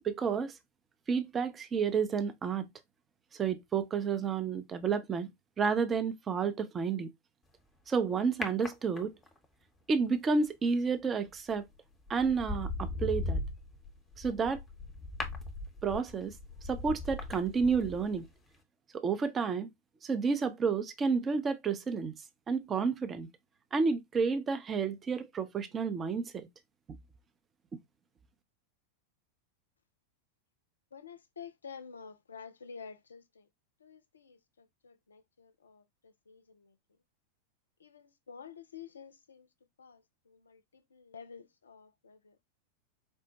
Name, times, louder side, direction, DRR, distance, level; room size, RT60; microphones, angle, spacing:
voice 1, 0.0-0.5 1.1-2.6 3.4-5.3 5.6-7.1 7.9-9.1 9.9-11.7 12.1-13.4 14.2-14.6 15.8-16.3 16.7-18.3 18.9-19.7 20.0-22.1 22.5-23.3 23.7-26.5, right 5 dB, 20° right, 0.5 m, -30 dB
sound 1, 8.4-9.4 11.3-11.6 12.1-18.3 18.5-18.6, left 2 dB, 15° left, 0.8 m, -38 dB
voice 2, 30.9-33.5 33.8-36.7 37.8-39.5 39.8-42.4, left 6 dB, 70° left, 0.4 m, -50 dB
4.3 x 2.1 x 2.8 m
figure-of-eight pair, 90°, 0 cm